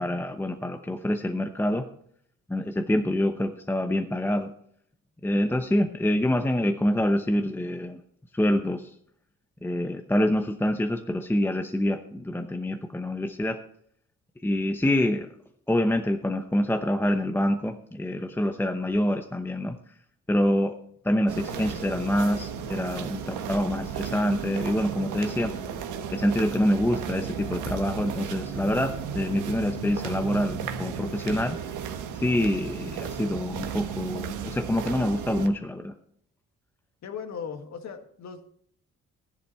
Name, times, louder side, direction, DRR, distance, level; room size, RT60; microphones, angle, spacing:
voice 1, 0.0-1.9 2.5-4.5 5.2-8.0 8.3-8.9 9.6-13.6 14.4-15.3 15.7-19.8 20.3-20.8 21.0-25.5 26.1-31.6 32.1-35.9, left 1 dB, 5° left, 6 dB, 0.9 m, -26 dB
sound 1, 21.3-35.5, right 7 dB, 80° right, 1.5 m, -34 dB
voice 2, 37.0-38.5, left 6 dB, 65° left, 7 dB, 1.9 m, -38 dB
13.0 x 11.0 x 4.4 m, 0.65 s
cardioid pair, 90°, 30 cm